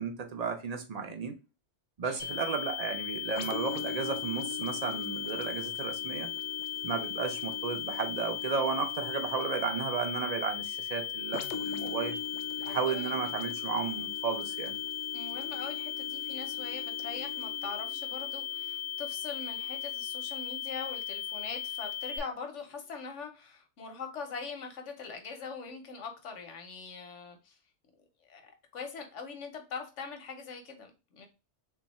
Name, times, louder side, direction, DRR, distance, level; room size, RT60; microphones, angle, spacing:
voice 1, 0.0-1.4 2.0-6.3 6.8-12.2 12.7-14.7, right 5 dB, 40° right, 0.6 m, -33 dB
sound 1, 2.2-22.2, left 11 dB, 5° right, 1.0 m, -37 dB
sound 2, 3.4-20.9 21.4-21.6, left 6 dB, 75° left, 0.9 m, -44 dB
voice 2, 12.6-13.3 15.1-27.6 28.2-31.3, left 5 dB, 90° left, 1.2 m, -42 dB
3.5 x 2.8 x 4.1 m
omnidirectional pair, 1.2 m